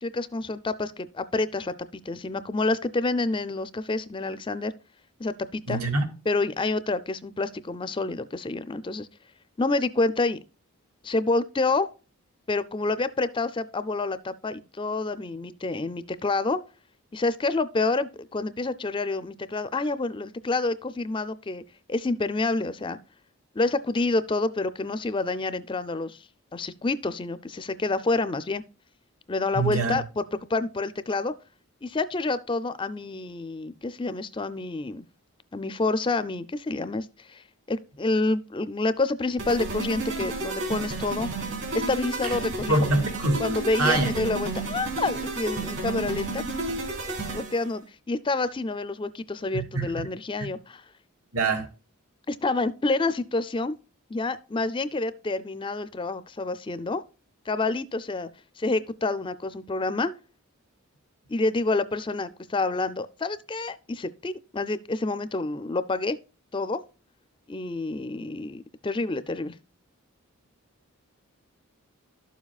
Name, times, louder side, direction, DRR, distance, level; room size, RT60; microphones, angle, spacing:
voice 1, 0.0-4.7 5.2-5.8 6.3-9.1 9.6-10.4 11.0-11.9 12.5-16.6 17.1-21.6 21.9-23.0 23.5-26.3 26.5-28.6 29.3-30.2 30.5-31.3 31.8-35.0 35.5-41.3 41.7-42.8 43.4-46.4 47.3-50.8 52.3-53.7 54.1-57.0 57.5-58.3 58.6-60.1 61.3-66.2 66.5-66.8 67.5-69.5, left 3 dB, 20° left, 0.4 m, -28 dB
voice 2, 5.7-6.1 29.5-30.0 42.2-42.4 42.7-43.4 43.8-44.2 49.5-49.9 51.3-51.7, right 2 dB, 80° right, 2.4 m, -24 dB
sound 1, 39.4-47.7, right 2 dB, 55° right, 3.3 m, -32 dB
12.0 x 7.2 x 2.3 m
head